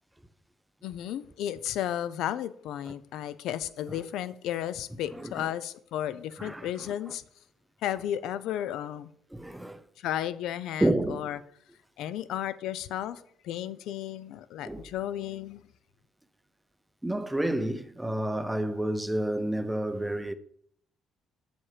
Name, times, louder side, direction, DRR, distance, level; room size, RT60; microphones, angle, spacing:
voice 1, 0.8-7.2 7.8-9.1 10.0-11.4 12.0-15.6, left 11 dB, 80° left, 0.6 m, -33 dB
voice 2, 5.1-5.5 6.4-6.9 9.3-9.8 10.8-11.3 14.6-14.8 17.0-20.3, right 1 dB, 5° right, 0.5 m, -30 dB
7.4 x 7.1 x 5.0 m
cardioid pair, 150°, 0 cm